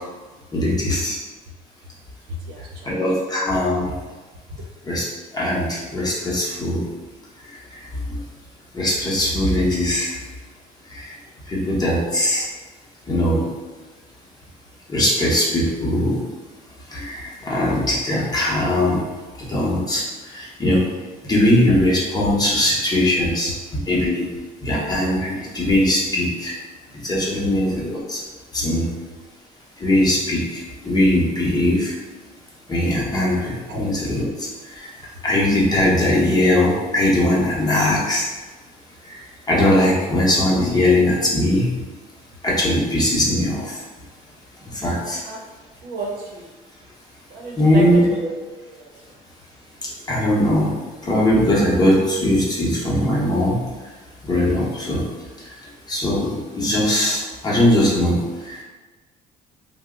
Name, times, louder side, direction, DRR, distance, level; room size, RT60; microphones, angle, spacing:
voice 1, 0.5-1.2 2.9-3.8 4.9-5.0 5.3-6.8 8.7-10.2 10.9-11.0 11.5-12.5 13.1-13.4 14.9-16.2 16.9-19.0 19.5-20.0 20.3-20.8 21.3-23.5 23.9-24.3 24.6-26.5 27.0-28.2 28.5-28.9 29.8-30.5 30.8-31.9 32.7-34.3 35.2-38.3 39.5-41.7 42.4-43.7 44.8-45.2 47.6-48.1 50.1-50.7 51.0-53.6 54.3-55.1 55.9-58.2 58.5-58.6, left 1 dB, 25° left, -4 dB, 0.8 m, -20 dB
voice 2, 2.5-3.0 33.7-33.8 45.0-45.4 45.8-46.5 47.3-48.3 48.7-48.9, right 3 dB, 70° right, -1 dB, 0.7 m, -32 dB
2.7 x 2.1 x 3.6 m, 1.3 s
cardioid pair, 110°, 17 cm